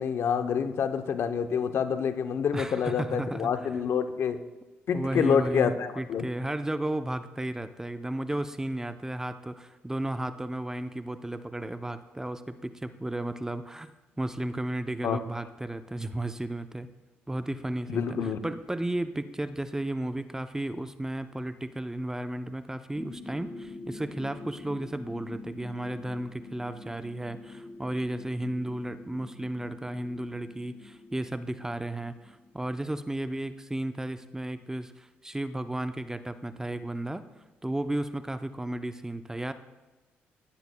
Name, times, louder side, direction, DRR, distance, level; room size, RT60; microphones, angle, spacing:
voice 1, 0.0-4.4 4.9-6.3 15.0-15.2 17.9-18.4, left 7 dB, 65° left, 10 dB, 0.7 m, -27 dB
voice 2, 2.5-3.7 4.9-13.9 14.2-16.9 17.3-37.2 37.6-39.5, right 1 dB, 10° right, 10 dB, 0.6 m, -34 dB
sound 1, 22.9-33.4, left 2 dB, 30° left, 3.7 m, -46 dB
15.5 x 10.5 x 2.2 m, 1.1 s
supercardioid pair, 65°, 5 cm